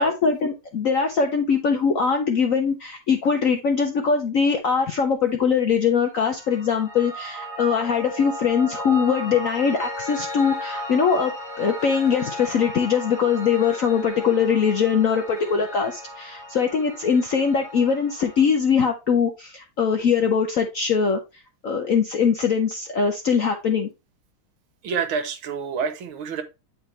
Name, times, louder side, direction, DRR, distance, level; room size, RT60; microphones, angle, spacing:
voice 1, 0.0-11.3 11.6-21.2 21.6-23.9, left 6 dB, 65° left, 0.8 m, -22 dB
Piano, 6.1-18.4, equal, 20° left, 2.4 m, -36 dB
voice 2, 24.8-26.4, right 6 dB, 80° right, 1.8 m, -28 dB
9.1 x 4.1 x 3.2 m
omnidirectional pair, 2.3 m